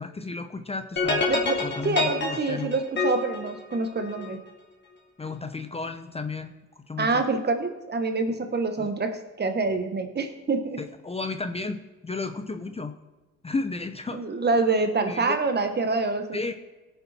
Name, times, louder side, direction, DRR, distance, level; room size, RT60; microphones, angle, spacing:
voice 1, 0.0-1.3 1.6-2.8 5.2-7.2 8.8-8.9 10.8-12.9 13.4-14.3 15.0-15.4 16.3-16.5, left 3 dB, 20° left, 8 dB, 0.7 m, -33 dB
sound 1, 1.0-4.3, left 3 dB, 35° left, 2.6 m, -27 dB
voice 2, 1.3-4.4 7.0-10.8 14.1-16.4, right 3 dB, 35° right, 7 dB, 1.4 m, -26 dB
17.0 x 7.0 x 4.3 m, 1.1 s
cardioid pair, 90°, 30 cm